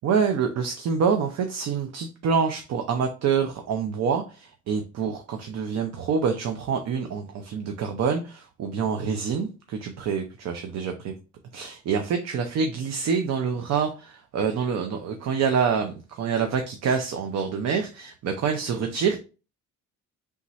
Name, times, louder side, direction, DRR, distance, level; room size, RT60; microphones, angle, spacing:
voice 1, 0.0-11.1 11.5-19.2, right 6 dB, 60° right, 5 dB, 0.7 m, -26 dB
4.2 x 3.5 x 3.0 m, 0.33 s
cardioid pair, 115°, 31 cm